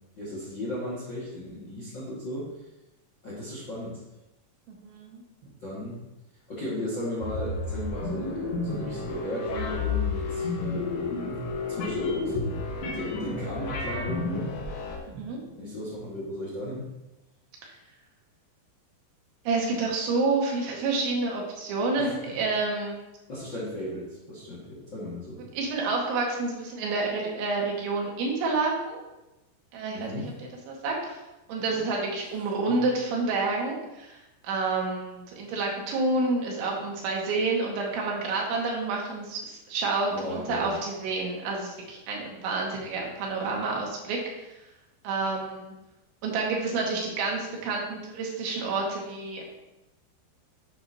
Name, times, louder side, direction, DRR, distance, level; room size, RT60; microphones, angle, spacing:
voice 1, 0.1-2.5 3.2-4.0 5.6-6.0 6.5-11.1 11.7-12.6 12.9-14.5 15.6-16.8 22.0-22.2 23.3-25.4 29.9-30.3 31.6-31.8 32.4-32.8 40.1-40.7, left 1 dB, 45° left, -6 dB, 1.5 m, -36 dB
voice 2, 4.7-5.2 15.1-15.4 19.5-23.0 25.6-29.0 29.7-30.1 30.7-31.2 31.5-44.5 45.0-45.7 46.2-49.4, right 3 dB, 90° right, -2 dB, 4.1 m, -29 dB
sound 1, 7.2-15.0, left 3 dB, 85° left, 3.7 m, -31 dB
10.5 x 7.8 x 2.9 m, 0.98 s
omnidirectional pair, 5.2 m